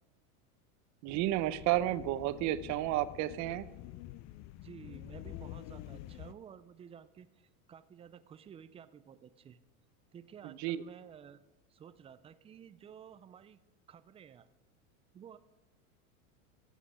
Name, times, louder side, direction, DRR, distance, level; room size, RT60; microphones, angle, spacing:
voice 1, 1.0-3.7 10.4-10.8, right 14 dB, 40° right, 15 dB, 0.7 m, -32 dB
sound 1, 1.1-6.3, left 14 dB, 40° left, 0.6 m, -48 dB
voice 2, 4.6-7.3 7.7-9.6 10.1-11.4 11.7-13.6 13.9-14.5 15.1-15.4, right 8 dB, 15° right, 14 dB, 0.4 m, -53 dB
15.5 x 8.2 x 4.9 m, 1.2 s
hypercardioid pair, 115°, 44 cm